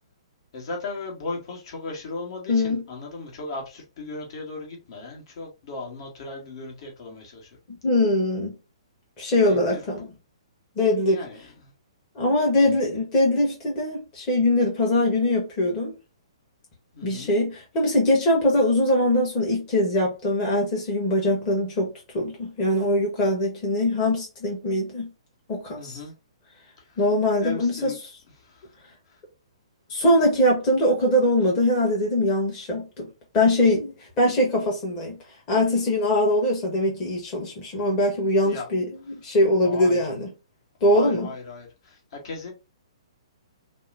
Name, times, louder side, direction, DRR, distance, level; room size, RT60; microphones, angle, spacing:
voice 1, 0.5-7.6 9.4-10.1 11.1-11.7 12.6-12.9 16.9-17.3 25.8-26.1 26.8-27.0 27.4-28.0 28.4-28.8 29.1-29.2 38.4-38.7 39.1-39.2 39.6-40.2 40.8-42.5, left 3 dB, 50° left, 1.6 m, -37 dB
voice 2, 2.5-2.8 7.8-8.6 9.2-10.0 10.8-11.2 12.1-15.9 17.0-25.1 25.5-26.0 27.0-27.9 29.9-33.1 33.3-35.2 35.5-40.3 40.8-41.3, left 1 dB, 30° left, 1.4 m, -22 dB
5.2 x 2.2 x 2.7 m
figure-of-eight pair, 125°, 3 cm